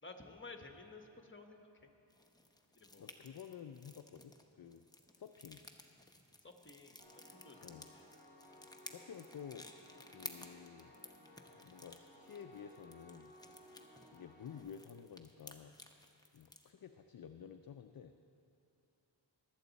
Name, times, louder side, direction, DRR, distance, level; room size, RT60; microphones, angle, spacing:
voice 1, 0.0-1.9 2.7-3.2 6.4-7.0 7.3-8.1, left 3 dB, 25° left, 4 dB, 1.1 m, -54 dB
sound 1, 2.1-16.7, left 1 dB, 10° left, 0.8 m, -55 dB
voice 2, 3.0-4.8 5.1-5.6 7.6-7.9 8.9-9.7 10.1-10.9 11.6-13.3 14.1-15.8 16.3-18.1, left 8 dB, 50° left, 7 dB, 0.5 m, -51 dB
Piano, 7.0-14.6, equal, 75° right, 3.0 m, -60 dB
20.0 x 8.0 x 4.1 m, 2.9 s
wide cardioid pair, 55°, 47 cm